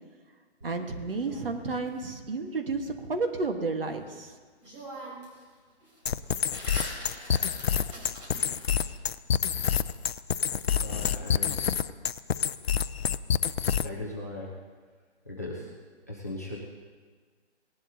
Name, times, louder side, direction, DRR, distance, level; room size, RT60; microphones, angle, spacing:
sound 1, 0.6-1.9 4.1-4.2 4.6-5.4 5.7-8.9, right 1 dB, 25° right, 3.9 m, -43 dB
voice 1, 0.6-4.3, right 3 dB, 55° right, 5 dB, 1.5 m, -31 dB
sound 2, 6.1-14.0, left 8 dB, 65° left, 0.5 m, -27 dB
voice 2, 10.8-11.6 13.8-14.5 15.3-15.7 16.1-16.6, left 1 dB, 15° left, -3 dB, 0.7 m, -38 dB
18.5 x 11.0 x 2.8 m, 1.5 s
hypercardioid pair, 180°, 34 cm